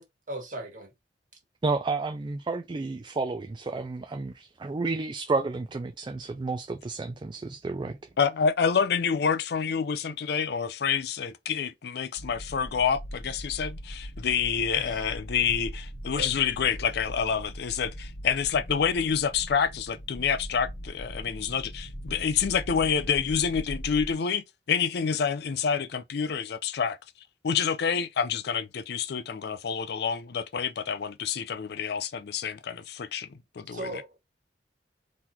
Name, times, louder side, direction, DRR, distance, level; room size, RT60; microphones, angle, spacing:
voice 1, 0.3-0.9 14.7-15.0 16.1-16.3 33.7-34.2, right 1 dB, 50° right, 1.6 m, -37 dB
voice 2, 1.6-8.0, right 3 dB, 25° right, 0.4 m, -31 dB
voice 3, 8.2-27.0 27.4-33.9, left 6 dB, 65° left, 0.4 m, -28 dB
sound 1, 12.2-24.1, equal, 30° left, 1.0 m, -40 dB
3.9 x 3.1 x 4.1 m
head